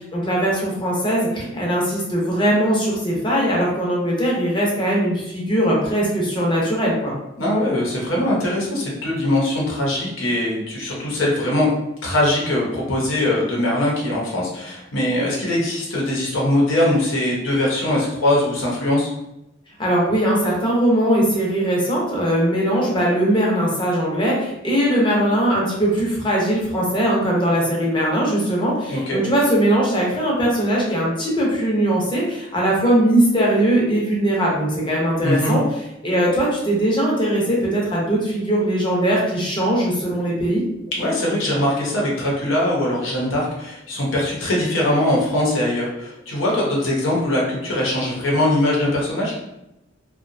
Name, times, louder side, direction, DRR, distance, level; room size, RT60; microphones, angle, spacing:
voice 1, 0.1-7.1 19.8-35.6 36.0-40.6, right 1 dB, 25° left, -3 dB, 0.7 m, -20 dB
voice 2, 7.4-11.7 12.0-19.1 28.9-29.2 35.2-35.5 41.0-49.3, left 1 dB, 85° left, -4 dB, 0.7 m, -21 dB
2.7 x 2.2 x 2.5 m, 0.88 s
head